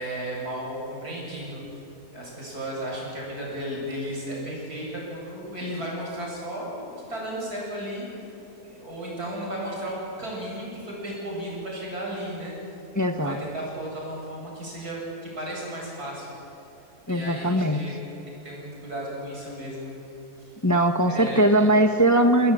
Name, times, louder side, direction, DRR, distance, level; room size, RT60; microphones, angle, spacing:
voice 1, 0.0-1.6 2.1-8.1 8.6-12.5 13.2-16.3 17.0-18.0 18.3-19.9 20.4-20.5 21.0-21.4, right 1 dB, 85° right, -3 dB, 8.6 m, -34 dB
voice 2, 12.9-13.4 17.1-17.8 20.6-22.5, right 1 dB, 15° left, 6 dB, 0.9 m, -20 dB
29.0 x 20.5 x 8.7 m, 2.8 s
omnidirectional pair, 1.6 m